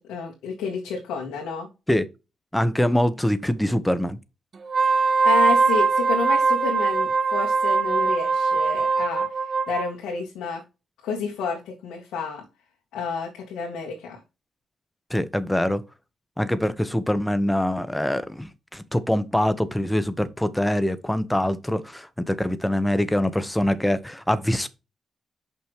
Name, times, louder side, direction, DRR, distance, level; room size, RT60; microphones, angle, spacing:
voice 1, 0.0-1.7 4.8-9.3 9.7-10.6 11.0-12.4 12.9-14.2, left 5 dB, 90° left, 1.8 m, -30 dB
voice 2, 2.5-4.2 15.1-15.8 16.4-24.7, left 1 dB, 10° left, 1.1 m, -24 dB
Wind instrument woodwind instrument, 4.6-9.9, right 4 dB, 55° right, 0.6 m, -21 dB
6.1 x 5.8 x 3.1 m
supercardioid pair, 50°, 0 cm